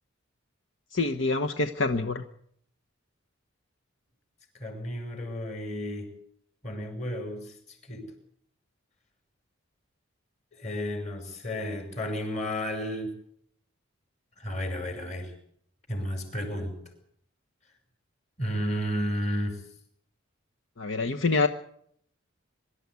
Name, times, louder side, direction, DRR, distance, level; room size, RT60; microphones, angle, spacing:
voice 1, 0.9-2.2 20.8-21.5, left 3 dB, 65° left, 6 dB, 1.1 m, -26 dB
voice 2, 4.5-6.1 6.6-7.6 7.9-8.1 10.6-13.1 14.4-15.3 15.9-16.8 18.4-19.6, equal, 35° left, 5 dB, 5.8 m, -32 dB
24.0 x 13.0 x 9.6 m, 0.68 s
head